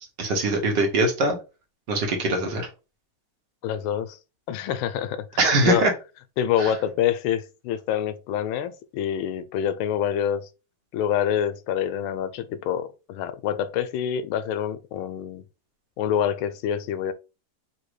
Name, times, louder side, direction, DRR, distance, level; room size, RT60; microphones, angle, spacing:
voice 1, 0.2-1.4 1.9-2.7 5.4-5.9 6.6-6.7, right 2 dB, 60° right, 1.7 m, -22 dB
voice 2, 3.6-4.2 4.5-5.9 6.4-10.5 10.9-15.4 16.0-17.1, left 9 dB, 90° left, 1.4 m, -26 dB
4.0 x 2.7 x 4.7 m
omnidirectional pair, 2.2 m